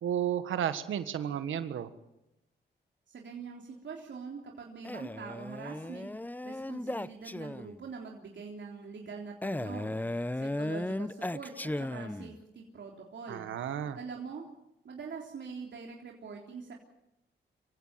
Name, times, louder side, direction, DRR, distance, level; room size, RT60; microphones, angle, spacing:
voice 1, 0.0-1.9 13.3-14.0, right 9 dB, 90° right, 11 dB, 1.6 m, -32 dB
voice 2, 3.1-6.1 6.4-14.5 14.8-16.7, right 5 dB, 65° right, 0 dB, 3.6 m, -44 dB
Male speech man speaking, 4.8-7.9 9.4-12.4, left 1 dB, 10° left, 0.8 m, -36 dB
26.0 x 16.0 x 7.6 m, 0.88 s
cardioid pair, 65°, 20 cm